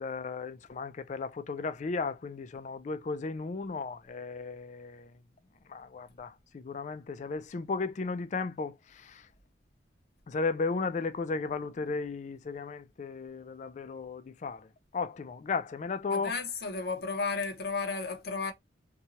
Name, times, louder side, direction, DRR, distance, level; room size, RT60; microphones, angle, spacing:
voice 1, 0.0-5.1 5.7-9.3 10.3-14.7 14.9-16.3, left 4 dB, 40° left, 0.3 m, -35 dB
voice 2, 16.1-18.5, left 4 dB, 55° left, 0.8 m, -33 dB
2.8 x 2.3 x 2.8 m
head